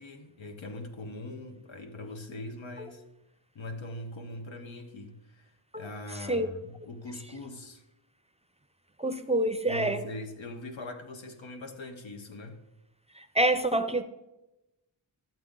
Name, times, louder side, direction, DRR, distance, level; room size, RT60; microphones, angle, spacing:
voice 1, 0.0-3.0 3.5-7.8 9.7-12.6, left 2 dB, 85° left, 1.1 m, -41 dB
voice 2, 5.7-6.5 9.0-10.1 13.1-14.0, right 1 dB, 15° right, 0.5 m, -28 dB
12.5 x 7.6 x 3.8 m
wide cardioid pair, 95°, 45 cm